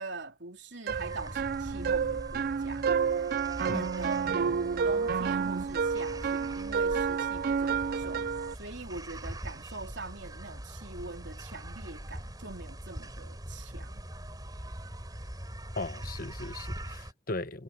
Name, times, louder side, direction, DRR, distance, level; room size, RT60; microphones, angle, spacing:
voice 1, 0.0-3.3 3.6-4.4 4.8-14.0, right 3 dB, 65° right, 3.5 m, -43 dB
sound 1, 0.9-17.1, right 1 dB, 20° right, 4.1 m, -42 dB
sound 2, 0.9-8.5, right 6 dB, 50° right, 0.4 m, -30 dB
voice 2, 15.7-17.6, left 2 dB, 50° left, 1.1 m, -37 dB
head